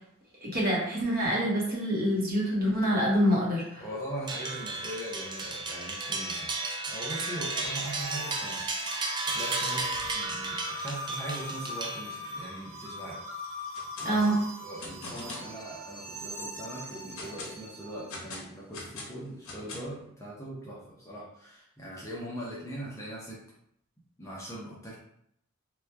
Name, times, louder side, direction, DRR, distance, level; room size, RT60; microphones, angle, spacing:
voice 1, 0.4-3.8 14.0-14.4, equal, 45° right, -4 dB, 1.1 m, -26 dB
sound 1, 3.6-18.2, equal, 65° right, 0.7 m, -41 dB
voice 2, 3.8-6.5 6.9-8.6 9.3-13.5 14.0-23.4 24.2-24.9, right 1 dB, 15° left, -5 dB, 0.7 m, -41 dB
sound 2, 4.3-12.4, right 3 dB, 20° right, 0.4 m, -34 dB
sound 3, 13.6-14.1 14.4-15.5 16.0-16.1 16.6-17.6 18.1-20.0, left 2 dB, 75° left, 0.8 m, -42 dB
3.0 x 2.3 x 3.3 m, 0.72 s
head